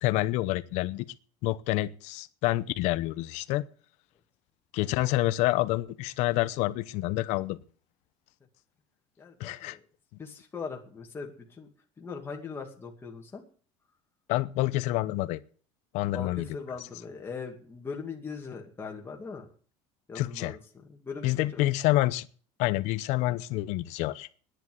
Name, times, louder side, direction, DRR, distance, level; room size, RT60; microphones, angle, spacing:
voice 1, 0.0-1.0 1.4-3.6 4.7-7.6 9.4-9.8 14.3-15.4 15.9-16.4 20.1-20.6 21.2-22.3 22.6-24.3, left 17 dB, 65° left, 0.9 m, -28 dB
voice 2, 9.2-9.8 10.2-11.7 12.0-13.4 16.1-19.4 20.1-20.6 20.9-21.3 21.5-21.7, left 5 dB, 20° left, 2.4 m, -40 dB
11.0 x 10.5 x 7.9 m
cardioid pair, 145°, 13 cm